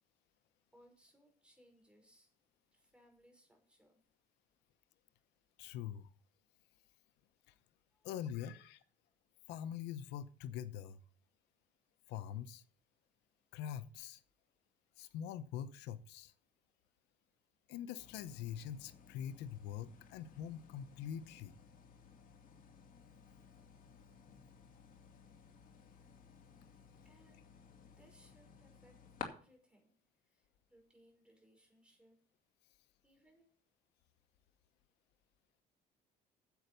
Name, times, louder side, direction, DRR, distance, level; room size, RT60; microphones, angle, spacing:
voice 1, 0.7-2.3 2.7-4.0 7.9-8.1 27.0-27.4 28.0-28.9 29.2-30.0 30.2-32.2 33.0-33.5, equal, 5° right, 2 dB, 5.3 m, -67 dB
voice 2, 5.6-6.1 7.5-7.6 8.0-8.8 9.5-11.0 12.1-12.6 13.5-14.2 15.0-16.3 17.7-21.5, left 9 dB, 90° left, 13 dB, 0.8 m, -44 dB
sound 1, 18.0-29.3, left 7 dB, 55° left, 2.4 m, -56 dB
9.5 x 7.8 x 6.8 m, 0.42 s
cardioid pair, 110°, 17 cm